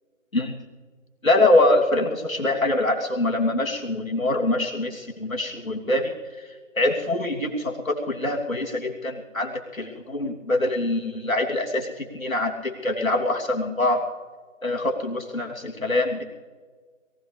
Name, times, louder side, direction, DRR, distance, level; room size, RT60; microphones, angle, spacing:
voice 1, 1.2-6.5 6.8-14.0 14.6-16.2, left 2 dB, 85° left, 0 dB, 3.2 m, -24 dB
23.0 x 15.5 x 3.4 m, 1.5 s
figure-of-eight pair, 170°, 40 cm